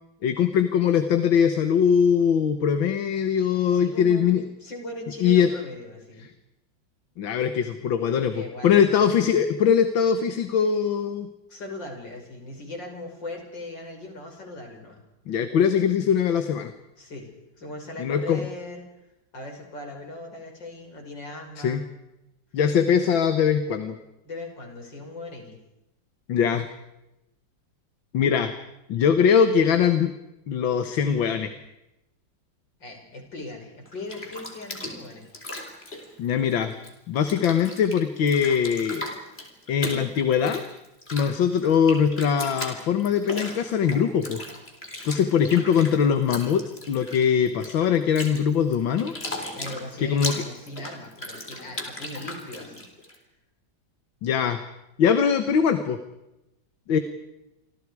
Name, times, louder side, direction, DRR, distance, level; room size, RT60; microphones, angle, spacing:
voice 1, 0.2-4.4 5.2-5.5 7.2-8.3 8.6-11.3 15.3-16.7 18.0-18.4 21.6-21.8 22.5-24.0 26.3-26.7 28.1-28.5 28.9-30.1 30.5-31.5 36.2-36.7 37.1-39.1 39.7-40.6 41.1-44.4 45.0-49.1 50.0-50.4 54.2-54.6 55.0-56.0 56.9-57.0, left 7 dB, 85° left, 8 dB, 2.1 m, -21 dB
voice 2, 3.7-6.3 8.3-9.1 11.5-15.0 17.0-17.3 17.6-18.8 19.3-21.9 24.2-25.6 32.8-35.2 49.5-52.9, left 2 dB, 70° left, 3 dB, 6.2 m, -39 dB
Bathtub (filling or washing), 33.8-36.9 37.2-53.1, left 1 dB, 30° left, 4.1 m, -37 dB
29.5 x 25.5 x 4.8 m, 0.90 s
omnidirectional pair, 2.1 m